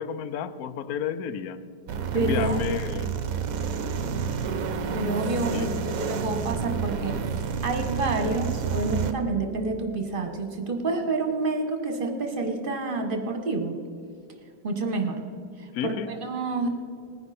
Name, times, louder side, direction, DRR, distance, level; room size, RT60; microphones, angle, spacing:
voice 1, 0.0-1.6 2.1-3.1 5.5-5.8 15.7-16.1, left 8 dB, 65° left, 1.0 m, -31 dB
sound 1, 1.9-9.1, right 6 dB, 60° right, 1.0 m, -29 dB
voice 2, 2.1-2.6 4.9-7.2 7.6-13.7 14.6-15.2 15.6-16.7, right 3 dB, 30° right, 1.4 m, -28 dB
19.5 x 10.0 x 4.3 m
omnidirectional pair, 2.1 m